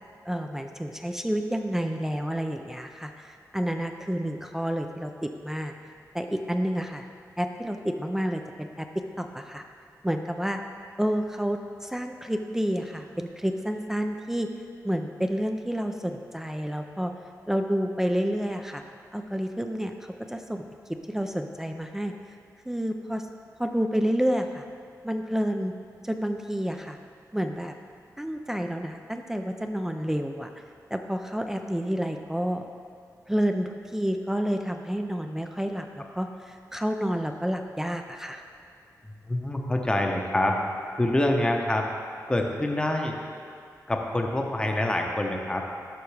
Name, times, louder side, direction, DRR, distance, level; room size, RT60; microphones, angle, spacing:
voice 1, 0.3-5.7 6.1-7.1 7.4-8.9 9.2-9.6 10.0-10.6 11.0-14.5 14.8-17.1 17.5-18.8 19.1-19.9 20.3-20.6 21.1-22.1 22.7-23.3 23.6-24.6 25.0-25.7 26.0-27.0 27.3-27.7 28.2-30.5 30.9-32.6 33.3-38.4, equal, 5° right, 5 dB, 0.3 m, -29 dB
voice 2, 39.3-40.7 40.9-41.9 42.3-43.2 43.9-45.7, left 1 dB, 15° left, 2 dB, 0.7 m, -26 dB
11.5 x 6.3 x 3.3 m, 2.3 s
wide cardioid pair, 140°, 6 cm